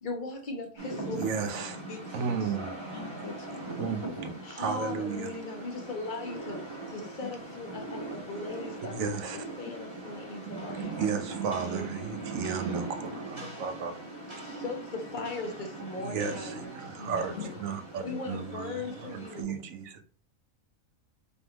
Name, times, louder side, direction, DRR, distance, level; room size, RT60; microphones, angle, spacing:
voice 1, 0.0-1.7 4.4-9.0 9.6-12.2 14.4-17.6 18.0-19.6, left 3 dB, 40° left, 0.9 m, -39 dB
Rain, 0.8-19.4, right 2 dB, 20° right, 1.3 m, -41 dB
voice 2, 1.1-1.8 2.1-2.7 3.6-5.3 8.9-9.4 10.5-13.9 16.0-20.0, right 6 dB, 75° right, 1.1 m, -34 dB
voice 3, 2.9-3.5 7.2-7.3 13.4-13.5 17.1-17.4 18.0-18.4, left 7 dB, 70° left, 0.9 m, -42 dB
4.3 x 3.6 x 2.9 m
omnidirectional pair, 1.4 m